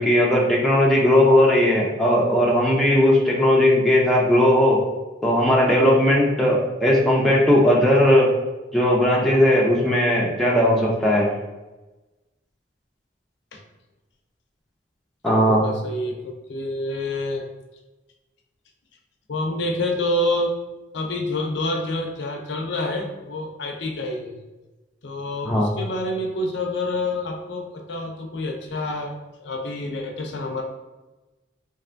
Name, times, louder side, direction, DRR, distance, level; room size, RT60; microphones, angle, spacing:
voice 1, 0.0-4.8 5.2-8.3 8.7-11.3 15.2-15.7 25.5-25.7, left 1 dB, ahead, -4 dB, 0.4 m, -17 dB
voice 2, 15.2-17.5 19.3-20.5 20.9-24.4 25.0-30.6, left 1 dB, 70° left, 2 dB, 0.5 m, -27 dB
3.2 x 2.5 x 2.5 m, 1.1 s
head